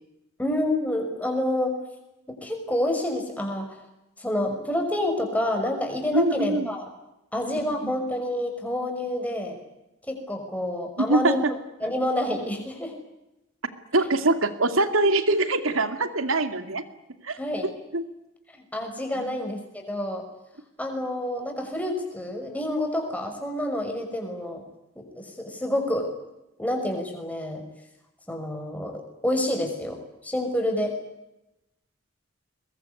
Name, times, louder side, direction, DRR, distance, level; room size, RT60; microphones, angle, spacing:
voice 1, 0.4-1.7 2.4-3.8 4.2-6.9 7.3-9.6 10.1-11.4 11.8-12.9 17.4-17.7 18.7-20.2 20.8-24.6 25.4-26.1 26.6-27.6 28.3-30.0 30.2-30.9, left 1 dB, 5° left, 3 dB, 5.8 m, -28 dB
voice 2, 6.1-6.7 7.8-7.9 11.0-11.5 13.9-16.8 17.2-18.0 19.1-19.4, right 2 dB, 80° right, 10 dB, 2.5 m, -24 dB
22.5 x 22.0 x 9.7 m, 0.93 s
head